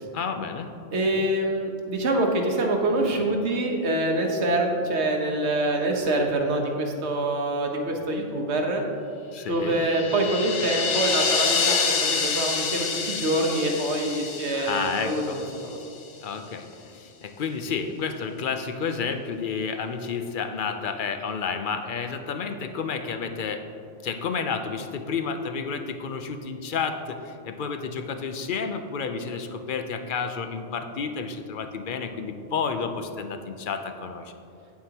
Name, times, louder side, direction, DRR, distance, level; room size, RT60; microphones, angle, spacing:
voice 1, 0.1-0.7 1.1-1.2 9.3-9.8 14.5-15.5 16.2-23.6 24.0-34.3, left 5 dB, 55° left, 7 dB, 0.7 m, -31 dB
voice 2, 0.9-8.8 9.5-15.8, right 1 dB, 70° right, 2 dB, 1.3 m, -25 dB
sound 1, 9.6-15.8, left 5 dB, 80° left, 1.1 m, -27 dB
9.4 x 8.5 x 2.9 m, 2.7 s
omnidirectional pair, 1.2 m